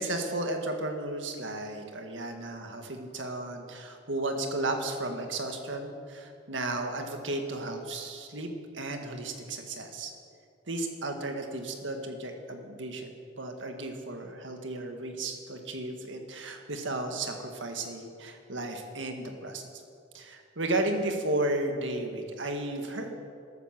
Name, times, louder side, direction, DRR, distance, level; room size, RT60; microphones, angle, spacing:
voice 1, 0.0-10.1 10.7-13.1 13.4-19.6 20.1-23.2, right 2 dB, 75° right, 4 dB, 1.9 m, -34 dB
13.5 x 12.0 x 7.7 m, 2.4 s
head